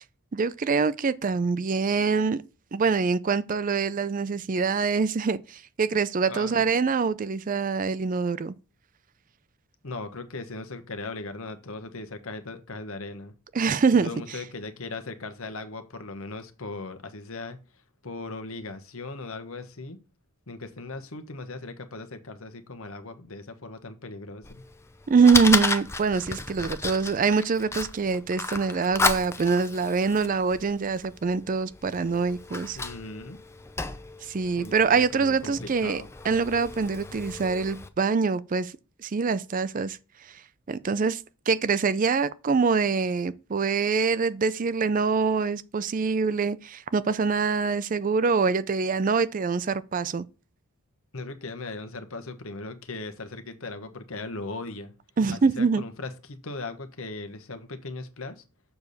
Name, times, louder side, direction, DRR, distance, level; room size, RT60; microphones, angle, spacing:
voice 1, 0.3-2.4 2.7-8.5 13.5-14.1 25.1-32.8 34.2-38.7 39.0-40.0 40.7-41.2 41.5-50.2 55.2-55.8, right 5 dB, 35° right, 0.4 m, -24 dB
voice 2, 6.3-6.7 9.8-13.3 14.0-17.6 18.0-20.0 20.5-24.6 32.7-33.4 34.5-36.1 51.1-54.9 55.3-58.4, left 3 dB, 65° left, 1.2 m, -38 dB
Fire, 24.4-37.9, left 3 dB, 10° left, 0.6 m, -33 dB
7.0 x 6.8 x 4.1 m
head